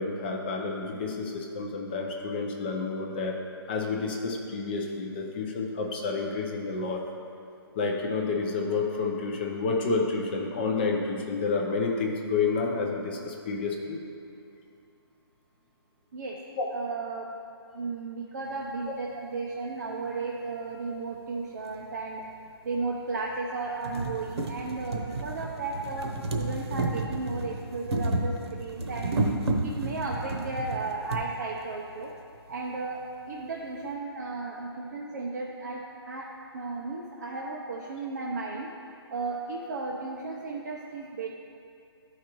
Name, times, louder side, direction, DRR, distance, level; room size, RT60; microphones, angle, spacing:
voice 1, 0.0-3.4 3.7-7.0 7.8-14.0 16.6-16.7, left 4 dB, 25° left, 0 dB, 0.6 m, -29 dB
voice 2, 16.7-17.3 17.7-22.3 22.6-29.1 29.6-32.1 32.5-33.0 33.3-36.3 36.5-38.7 39.1-41.3, right 3 dB, 45° right, -2 dB, 0.6 m, -34 dB
sound 1, 21.7-21.8 22.7-22.8 23.3-23.4 23.7-31.2 32.2-32.3 32.5-32.6, right 2 dB, 90° right, 1.0 m, -31 dB
12.5 x 4.9 x 3.0 m, 2.5 s
hypercardioid pair, 170°, 13 cm